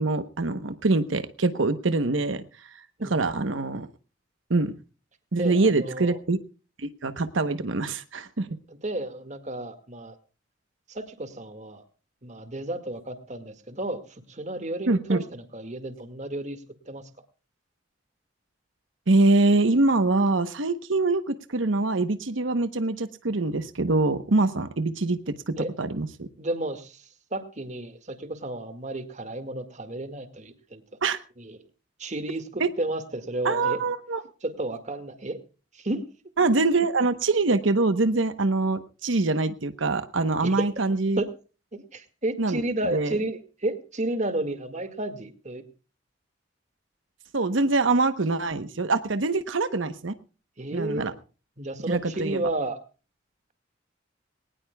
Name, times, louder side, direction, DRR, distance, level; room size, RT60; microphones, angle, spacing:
voice 1, 0.0-3.9 4.5-4.7 5.3-6.4 6.8-8.5 14.9-15.2 19.1-26.3 31.0-31.2 32.6-32.7 33.4-34.2 36.4-41.2 42.4-42.6 42.9-43.1 47.3-50.1 50.7-51.1 51.9-52.4, right 3 dB, 85° right, 10 dB, 1.0 m, -24 dB
voice 2, 5.4-6.2 8.7-10.2 10.9-11.8 12.2-17.1 25.6-25.7 26.4-27.0 27.3-30.8 31.4-31.6 32.0-33.8 34.4-35.4 35.7-36.0 40.4-40.6 41.2-41.3 41.7-45.7 50.6-51.1 51.6-52.8, right 1 dB, 40° right, 9 dB, 2.0 m, -32 dB
21.0 x 19.0 x 2.3 m, 0.36 s
head